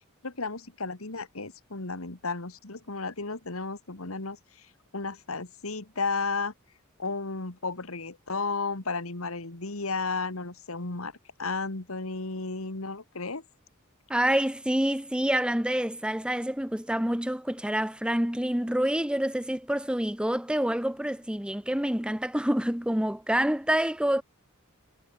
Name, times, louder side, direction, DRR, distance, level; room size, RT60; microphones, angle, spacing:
voice 1, 0.2-6.5 7.0-11.1 11.4-13.4, left 3 dB, 70° left, 2.2 m, -33 dB
voice 2, 14.1-24.2, right 1 dB, 5° right, 1.0 m, -27 dB
head